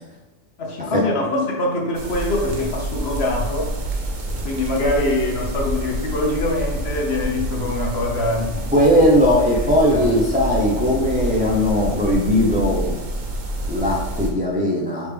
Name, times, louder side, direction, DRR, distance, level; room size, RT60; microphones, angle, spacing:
voice 1, 0.6-3.7 4.3-8.7 9.9-10.2, left 2 dB, 55° left, -1 dB, 1.0 m, -24 dB
sound 1, 1.9-14.3, right 1 dB, 85° right, 1.2 m, -28 dB
voice 2, 8.7-12.9 13.7-15.1, equal, 15° right, -3 dB, 0.3 m, -18 dB
4.9 x 3.2 x 3.4 m, 1.1 s
omnidirectional pair, 1.3 m